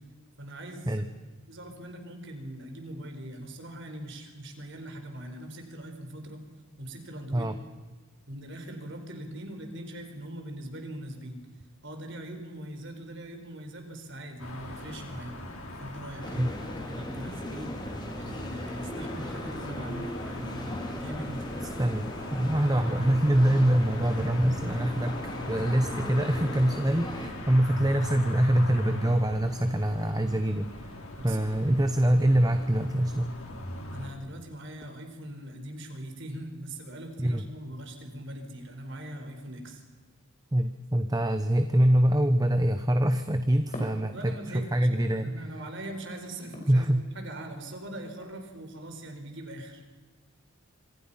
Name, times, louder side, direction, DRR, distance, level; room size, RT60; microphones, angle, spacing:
voice 1, 0.4-1.0 1.5-6.4 6.8-7.5 8.3-11.4 11.8-15.4 15.8-17.7 18.2-21.8 23.5-23.6 31.2-31.5 33.9-39.8 44.1-49.8, right 1 dB, 55° right, 5 dB, 4.8 m, -41 dB
sound 1, 14.4-34.1, left 1 dB, 75° left, 5.2 m, -40 dB
sound 2, 16.2-27.3, equal, 20° left, 3.0 m, -38 dB
voice 2, 21.8-25.2 25.5-33.4 37.2-37.4 40.5-45.6 46.7-47.1, right 1 dB, 15° right, 9 dB, 0.9 m, -25 dB
sound 3, 41.0-48.5, equal, 35° left, 4.7 m, -50 dB
27.0 x 25.5 x 5.8 m, 1.4 s
head